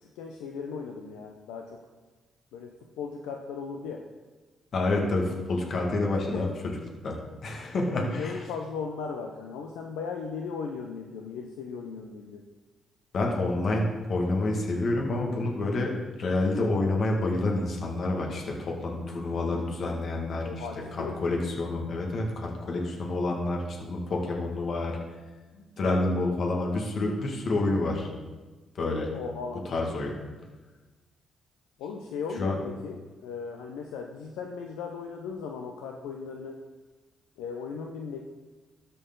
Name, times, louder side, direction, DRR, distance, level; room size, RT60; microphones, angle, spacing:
voice 1, 0.0-1.8 2.5-4.0 6.3-6.4 7.9-12.4 20.4-21.2 29.1-29.7 31.8-36.6 37.4-38.2, left 5 dB, 80° left, 2 dB, 0.5 m, -37 dB
voice 2, 4.7-6.7 7.0-8.3 13.1-15.9 16.2-20.7 21.0-25.0 25.5-28.1 28.8-29.1 29.7-30.1 32.4-32.6, left 2 dB, 60° left, 0 dB, 1.8 m, -28 dB
12.5 x 4.6 x 3.8 m, 1.3 s
hypercardioid pair, 50°, 0 cm